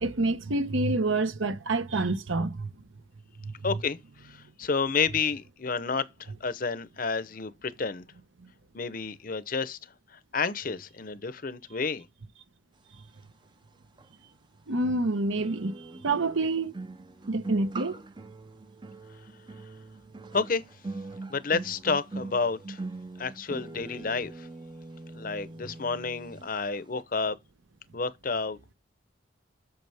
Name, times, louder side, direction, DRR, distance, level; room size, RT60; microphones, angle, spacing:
voice 1, 0.0-2.7 3.4-3.5 14.7-15.8 16.0-16.7 17.3-18.0, right 2 dB, 75° right, 0.9 m, -27 dB
voice 2, 3.6-4.0 4.2-8.0 8.7-9.8 10.3-12.1 20.3-20.6 21.3-22.8 23.2-24.5 25.1-27.4 27.9-28.6, left 4 dB, 45° left, 0.7 m, -30 dB
sound 1, 14.0-14.1 15.4-26.5 26.7-27.0, right 3 dB, 25° right, 0.5 m, -42 dB
8.0 x 6.8 x 3.4 m
head